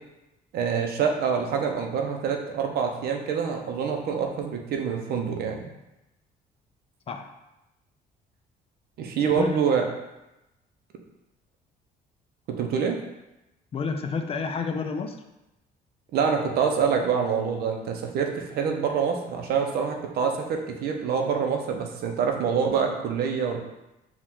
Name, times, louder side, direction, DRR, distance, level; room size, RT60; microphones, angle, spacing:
voice 1, 0.5-5.7 9.0-9.8 12.5-13.0 16.1-23.6, right 6 dB, 65° right, 3 dB, 0.7 m, -26 dB
voice 2, 13.7-15.2, left 5 dB, 35° left, 6 dB, 0.4 m, -30 dB
4.7 x 2.4 x 3.7 m, 0.94 s
cardioid pair, 110°, 17 cm